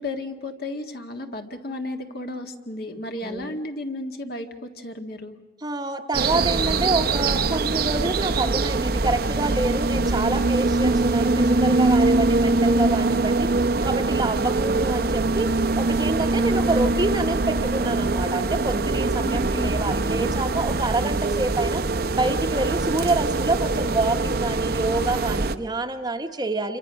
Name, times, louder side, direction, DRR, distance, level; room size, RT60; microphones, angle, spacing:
voice 1, 0.0-5.4 19.2-19.8, left 2 dB, 55° left, 5 dB, 1.8 m, -33 dB
voice 2, 3.2-3.5 5.6-21.8 22.1-26.8, right 2 dB, 20° right, 7 dB, 0.9 m, -27 dB
sound 1, 6.1-25.6, right 3 dB, 55° right, 0.7 m, -23 dB
28.0 x 24.0 x 6.3 m, 1.2 s
head